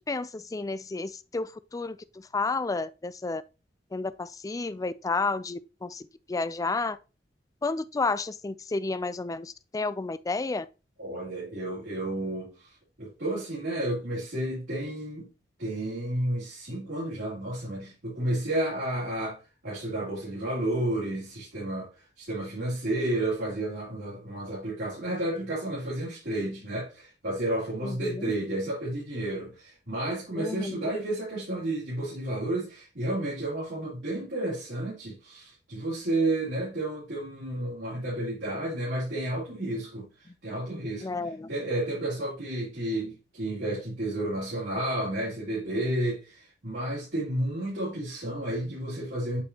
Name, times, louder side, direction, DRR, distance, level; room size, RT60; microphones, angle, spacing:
voice 1, 0.0-2.0 2.3-3.4 3.9-6.0 6.3-7.0 7.6-10.7 27.8-28.2 30.4-30.9 41.0-41.5, left 3 dB, 20° left, 0.4 m, -31 dB
voice 2, 11.0-12.7 13.0-15.3 15.6-19.4 19.6-21.9 22.2-40.1 40.4-41.1 41.5-49.4, right 1 dB, 75° right, 3.4 m, -31 dB
8.4 x 4.5 x 2.8 m
head